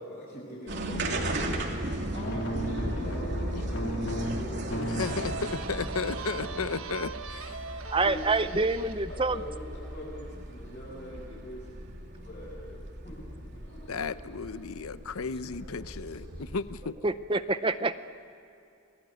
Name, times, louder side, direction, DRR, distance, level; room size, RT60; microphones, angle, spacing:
voice 1, 0.0-1.7 2.1-5.0 7.9-8.2 9.1-11.8 12.1-12.8 13.0-14.8 15.1-15.3 16.1-16.2, equal, 35° left, -7 dB, 7.5 m, -44 dB
sound 1, 0.7-16.8, right 1 dB, 50° right, 3.0 m, -37 dB
sound 2, 2.3-5.1 5.5-5.8 6.2-6.3, equal, 55° left, 2.8 m, -34 dB
voice 2, 4.8-7.7 13.9-16.9, left 4 dB, 80° left, 13 dB, 0.7 m, -34 dB
sound 3, 5.0-10.4, right 4 dB, 70° right, 1.4 m, -42 dB
voice 3, 7.9-9.4 17.0-17.9, right 3 dB, 25° right, 12 dB, 0.6 m, -26 dB
28.0 x 21.0 x 9.4 m, 2.6 s
head